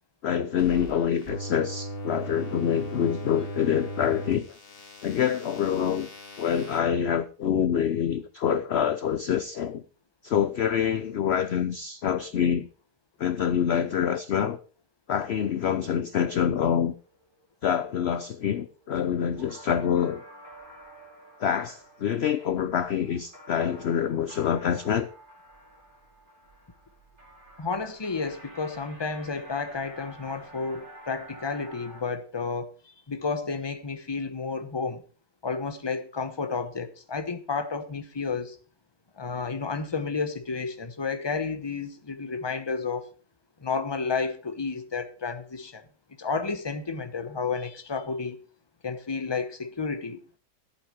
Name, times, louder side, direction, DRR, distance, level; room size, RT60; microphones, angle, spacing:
voice 1, 0.2-4.6 5.0-6.1 6.4-9.8 10.2-12.7 13.2-14.6 15.1-16.9 17.6-20.2 21.4-25.1, left 8 dB, 55° left, 0.7 m, -26 dB
sound 1, 0.6-6.8, right 1 dB, 35° left, 2.5 m, -38 dB
sound 2, 15.2-32.0, right 1 dB, 30° right, 4.7 m, -50 dB
voice 2, 27.6-35.0 35.4-38.6 39.2-43.1 43.6-45.8 46.2-48.4 48.8-50.2, left 4 dB, 20° left, 1.0 m, -31 dB
14.5 x 8.7 x 4.6 m
omnidirectional pair, 1.7 m